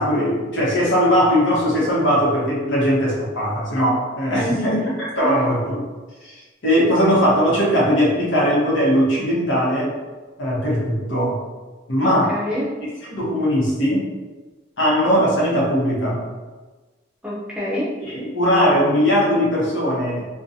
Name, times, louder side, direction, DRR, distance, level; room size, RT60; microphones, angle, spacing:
voice 1, 0.0-5.8 6.2-6.4 6.6-9.9 10.4-11.4 11.9-12.3 13.1-14.1 14.8-16.3 18.0-20.3, equal, 85° left, -5 dB, 0.9 m, -19 dB
voice 2, 4.3-4.9 5.2-5.4 12.0-12.7 17.2-17.9, left 1 dB, 5° right, -7 dB, 0.5 m, -27 dB
2.6 x 2.2 x 2.6 m, 1.3 s
head